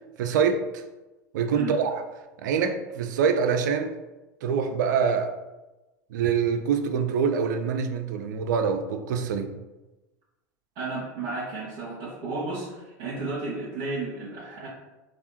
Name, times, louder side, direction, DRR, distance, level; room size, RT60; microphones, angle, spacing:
voice 1, 0.2-0.8 1.3-2.0 2.4-3.9 4.4-5.3 6.1-9.5, right 6 dB, 75° right, 7 dB, 0.4 m, -25 dB
voice 2, 10.7-14.7, right 3 dB, 55° right, -10 dB, 1.4 m, -33 dB
3.3 x 2.4 x 2.8 m, 1.1 s
hypercardioid pair, 90°, 10 cm